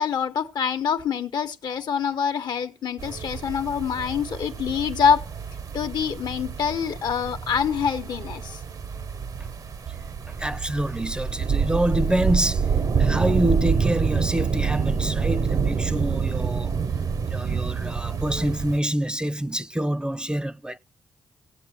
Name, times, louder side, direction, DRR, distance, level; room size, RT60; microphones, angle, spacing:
voice 1, 0.0-5.2 5.7-8.6, left 7 dB, 70° left, 0.9 m, -25 dB
sound 1, 3.0-18.8, right 6 dB, 55° right, 0.7 m, -27 dB
voice 2, 10.3-12.7 13.0-16.8 17.3-20.8, right 1 dB, 10° right, 0.5 m, -26 dB
18.0 x 7.5 x 2.9 m
cardioid pair, 65°, 7 cm